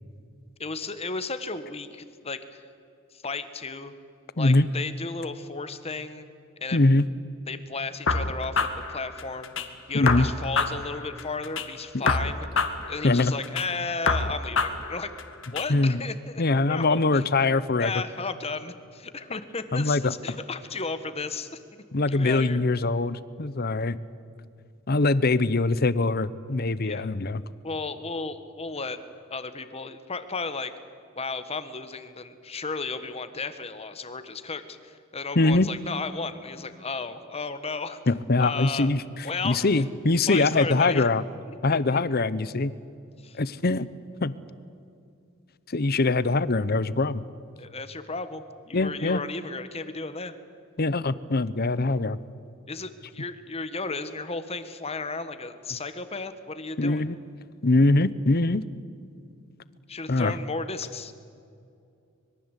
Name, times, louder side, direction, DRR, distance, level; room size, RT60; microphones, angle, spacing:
voice 1, 0.6-2.6 3.1-3.9 4.4-6.3 6.6-6.8 7.5-9.5 9.9-12.5 12.9-15.1 15.5-16.4 16.7-17.2 17.8-21.5 22.1-22.6 26.8-27.1 27.6-29.0 29.3-30.7 31.1-38.0 38.4-38.9 39.2-39.7 40.3-41.0 41.5-42.0 43.2-43.4 47.6-50.3 52.7-57.0 59.9-61.1, left 4 dB, 30° left, 11 dB, 1.5 m, -34 dB
voice 2, 6.7-7.1 9.9-10.3 11.9-12.2 13.0-13.3 15.7-16.0 16.4-17.9 19.7-20.1 21.9-24.0 24.9-27.4 35.4-35.7 38.1-41.2 41.6-42.7 43.4-43.9 44.2-44.3 45.7-47.2 48.7-49.2 50.8-52.2 56.8-57.2 57.6-58.6 60.1-60.3, left 2 dB, 50° left, 17 dB, 0.9 m, -23 dB
sound 1, 8.1-9.7 10.1-11.7 12.1-13.7 14.1-15.7, left 4 dB, 65° left, 2.1 m, -27 dB
25.5 x 22.5 x 8.3 m, 2.5 s
head